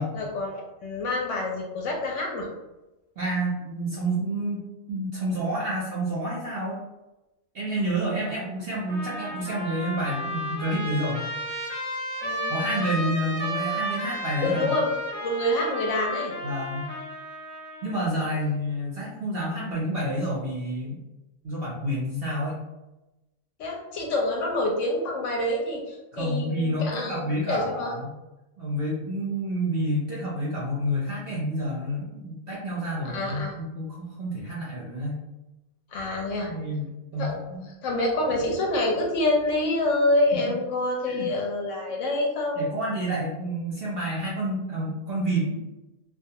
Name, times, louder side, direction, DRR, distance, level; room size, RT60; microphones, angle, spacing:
voice 1, 0.1-2.5 12.2-12.5 14.4-14.9 15.2-16.3 23.6-27.9 33.0-33.6 35.9-36.5 37.2-37.3 37.8-42.7, left 1 dB, 70° left, 0 dB, 0.8 m, -27 dB
voice 2, 3.2-6.8 7.5-11.2 12.5-14.7 16.4-16.9 17.8-21.0 21.4-22.6 26.1-28.2 28.6-35.2 36.4-37.7 41.1-41.3 42.6-45.7, right 1 dB, 60° right, -5 dB, 0.6 m, -29 dB
Trumpet, 8.9-18.0, equal, 10° left, 0.6 m, -33 dB
2.3 x 2.3 x 2.7 m, 1.0 s
omnidirectional pair, 1.5 m